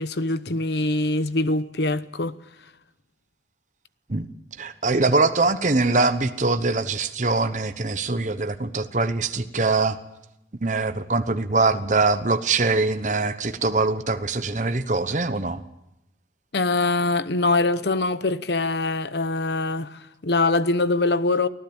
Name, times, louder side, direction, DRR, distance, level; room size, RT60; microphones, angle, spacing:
voice 1, 0.0-2.3 16.5-21.5, left 2 dB, 65° left, 0.9 m, -23 dB
voice 2, 4.6-10.0 10.6-15.6, right 3 dB, 40° right, 1.0 m, -23 dB
24.0 x 15.0 x 8.8 m
head